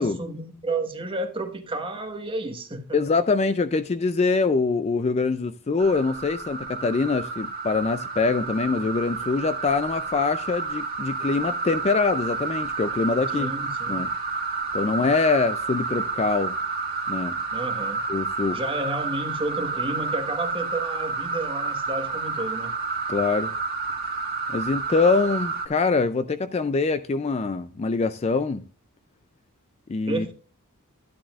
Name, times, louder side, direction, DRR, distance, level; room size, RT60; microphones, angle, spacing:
voice 1, 0.0-3.0 13.3-14.0 17.5-18.0 18.5-22.7 30.1-30.3, right 2 dB, 25° right, 1.3 m, -31 dB
voice 2, 2.9-13.5 13.9-14.1 14.7-16.5 17.1-17.4 18.1-18.6 23.1-23.5 24.5-28.6 29.9-30.3, left 4 dB, 30° left, 0.3 m, -24 dB
sound 1, 5.8-25.7, right 4 dB, 45° right, 1.8 m, -30 dB
12.0 x 10.0 x 2.4 m
head